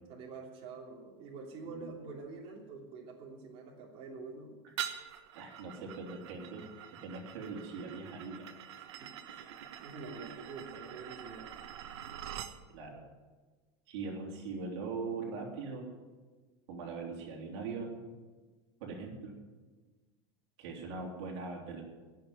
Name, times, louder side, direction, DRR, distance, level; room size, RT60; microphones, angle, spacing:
voice 1, 0.1-4.6 9.0-9.6 9.8-11.5, right 4 dB, 40° right, -2 dB, 3.1 m, -47 dB
voice 2, 1.6-2.1 5.3-6.6 6.9-8.5 12.7-13.0 13.9-15.9 16.7-18.0 18.8-19.4 20.6-21.8, right 4 dB, 70° right, 0 dB, 3.3 m, -41 dB
sound 1, 4.8-12.6, right 10 dB, 90° right, 1.2 m, -45 dB
16.0 x 6.8 x 9.2 m, 1.3 s
supercardioid pair, 145°, 14 cm